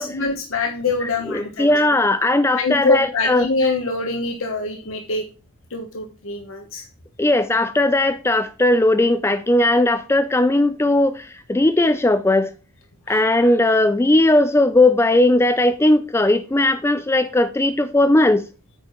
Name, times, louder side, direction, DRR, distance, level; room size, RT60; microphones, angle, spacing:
voice 1, 0.0-1.7 2.6-5.2 5.7-6.8 13.1-13.2, left 3 dB, 60° left, 1.2 m, -24 dB
voice 2, 1.3-3.5 7.2-12.5 13.1-18.4, left 1 dB, 10° left, 0.3 m, -17 dB
9.0 x 5.0 x 5.5 m
head